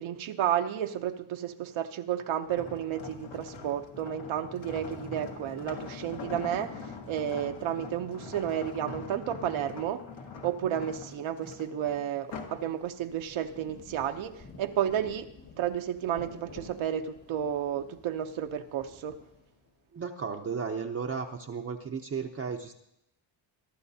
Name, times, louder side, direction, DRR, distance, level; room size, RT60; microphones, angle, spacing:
voice 1, 0.0-10.0 10.4-15.3 15.6-19.2, right 10 dB, 75° right, 6 dB, 0.8 m, -32 dB
sound 1, 2.4-12.7 13.1-13.4, left 4 dB, 70° left, 1.7 m, -43 dB
Rain, 12.6-19.8, left 3 dB, 55° left, 2.1 m, -52 dB
voice 2, 19.9-22.7, right 5 dB, 30° right, 1 dB, 0.6 m, -34 dB
22.5 x 11.5 x 2.7 m, 0.78 s
cardioid pair, 140°, 48 cm